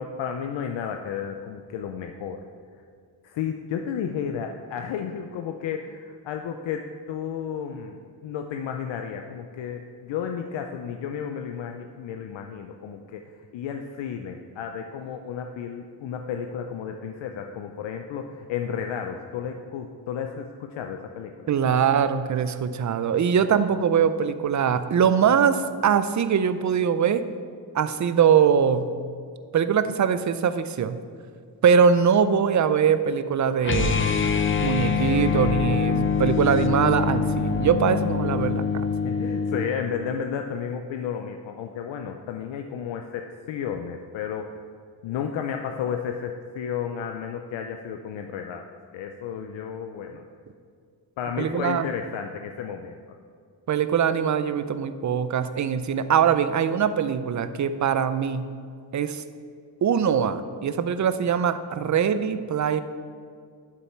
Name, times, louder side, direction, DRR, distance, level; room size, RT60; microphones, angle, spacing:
voice 1, 0.0-2.4 3.2-13.2 13.5-21.5 39.0-44.6 45.0-48.6 48.9-50.2 51.2-53.0, left 7 dB, 90° left, 5 dB, 0.6 m, -32 dB
voice 2, 21.5-27.3 27.7-28.9 29.5-31.0 31.6-34.1 34.6-38.8 51.4-51.9 53.7-58.5 58.9-59.2 59.8-62.8, right 7 dB, 40° right, 12 dB, 0.6 m, -22 dB
sound 1, 33.6-39.7, left 6 dB, 30° left, 0.7 m, -24 dB
11.0 x 7.1 x 4.4 m, 2.2 s
cardioid pair, 105°, 44 cm